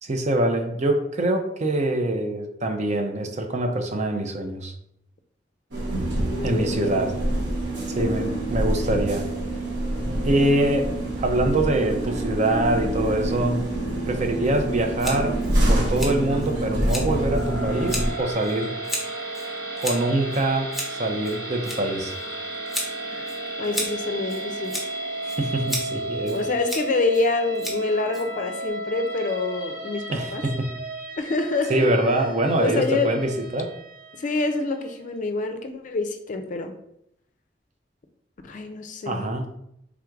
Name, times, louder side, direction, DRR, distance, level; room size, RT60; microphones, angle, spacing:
voice 1, 0.0-4.7 6.4-7.1 7.9-9.3 10.2-10.9 11.2-13.6 14.1-15.4 15.7-18.7 19.8-22.1 25.2-26.4 30.1-30.7 31.7-33.7 39.1-39.5, right 1 dB, 40° right, 4 dB, 0.5 m, -24 dB
sound 1, 5.7-18.1, right 1 dB, 80° right, 1.1 m, -26 dB
voice 2, 6.3-7.0 8.0-8.3 23.0-23.3 23.6-24.8 26.3-30.4 31.2-31.9 32.6-33.1 34.2-36.7 38.4-39.3, left 3 dB, 45° left, 6 dB, 0.4 m, -27 dB
Scissors, 15.0-28.7, equal, ahead, 0.9 m, -36 dB
sound 2, 16.8-35.0, right 2 dB, 60° right, 1.3 m, -34 dB
3.5 x 2.5 x 4.5 m, 0.75 s
head